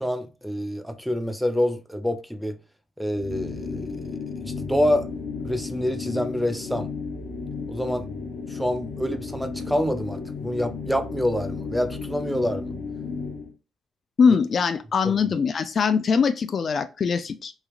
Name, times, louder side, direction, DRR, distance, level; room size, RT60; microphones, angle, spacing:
voice 1, 0.0-2.6 3.0-5.1 5.4-6.9 7.7-8.1 8.5-12.7 15.0-15.1, equal, ahead, 0.5 m, -27 dB
sound 1, 3.1-13.5, left 4 dB, 70° left, 0.7 m, -34 dB
voice 2, 14.2-17.5, left 5 dB, 50° left, 0.3 m, -22 dB
3.1 x 2.3 x 2.4 m
cardioid pair, 90°, 0 cm